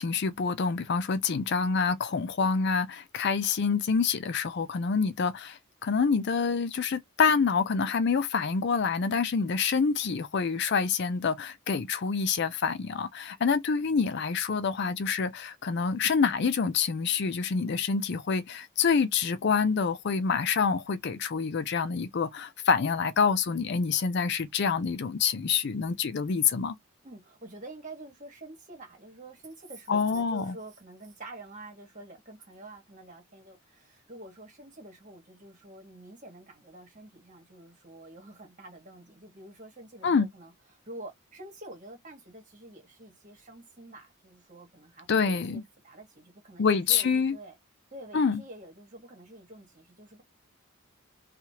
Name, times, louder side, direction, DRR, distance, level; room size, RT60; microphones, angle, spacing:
voice 1, 0.0-26.7 29.9-30.6 40.0-40.3 45.1-45.6 46.6-47.4 48.1-48.4, left 5 dB, 55° left, 0.4 m, -27 dB
voice 2, 27.0-47.6 47.9-50.2, right 1 dB, 35° right, 1.5 m, -47 dB
3.0 x 2.4 x 2.8 m
head